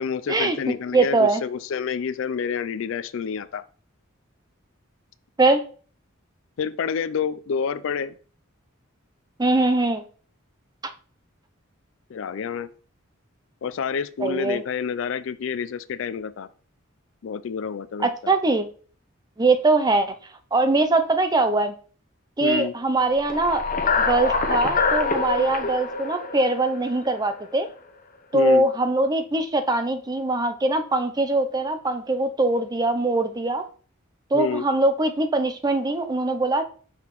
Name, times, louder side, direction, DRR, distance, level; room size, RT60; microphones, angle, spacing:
voice 1, 0.0-3.6 6.6-8.1 12.1-12.7 13.6-16.5 17.2-18.3 22.4-22.7 28.3-28.7 34.3-34.6, left 6 dB, 65° left, 15 dB, 0.4 m, -28 dB
voice 2, 0.9-1.4 5.4-5.6 9.4-10.0 14.2-14.6 18.0-18.7 19.4-20.1 20.5-21.7 22.4-23.6 24.0-27.7 28.3-33.6 34.3-36.6, right 2 dB, 20° right, 8 dB, 0.5 m, -22 dB
sound 1, 23.1-27.4, left 4 dB, 40° left, 0.8 m, -25 dB
5.7 x 5.6 x 3.0 m, 0.42 s
head